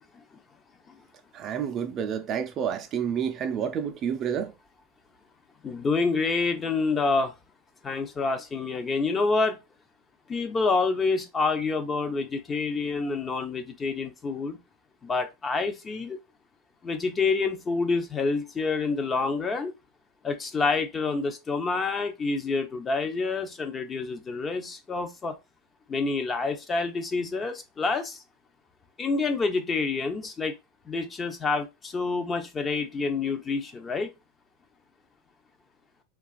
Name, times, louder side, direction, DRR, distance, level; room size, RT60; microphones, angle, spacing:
voice 1, 1.3-4.5, right 8 dB, 40° right, 0.4 m, -29 dB
voice 2, 5.6-7.3 7.8-9.6 10.3-14.6 15.0-16.2 16.8-19.7 20.2-25.4 25.9-28.2 29.0-30.5 30.9-34.1, left 4 dB, 25° left, 0.5 m, -27 dB
2.8 x 2.3 x 2.3 m
hypercardioid pair, 95°, 0 cm